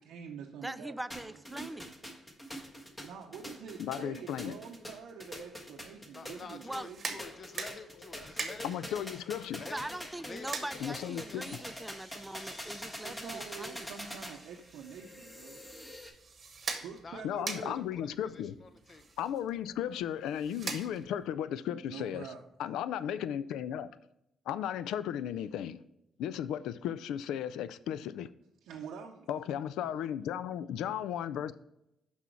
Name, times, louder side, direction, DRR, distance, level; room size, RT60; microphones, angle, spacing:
voice 1, 0.1-1.0 1.2-1.8 3.0-7.2 13.0-15.6 16.8-17.8 21.8-22.4 28.6-29.3, right 7 dB, 85° right, 0.6 m, -46 dB
voice 2, 0.6-1.9 6.6-6.9 9.7-13.9, right 1 dB, 10° right, 0.4 m, -42 dB
sound 1, 1.1-16.1, equal, 20° left, 1.5 m, -45 dB
voice 3, 3.8-4.6 8.6-9.6 10.8-11.4 17.2-18.6 19.2-22.3 22.6-23.9 24.5-25.8 26.2-28.3 29.3-31.5, left 10 dB, 85° left, 0.3 m, -35 dB
voice 4, 6.1-9.2 9.6-11.5 17.0-19.1, left 4 dB, 45° left, 0.7 m, -49 dB
sound 2, 6.7-21.3, right 4 dB, 40° right, 1.1 m, -45 dB
6.1 x 5.6 x 4.5 m
cardioid pair, 90°, 0 cm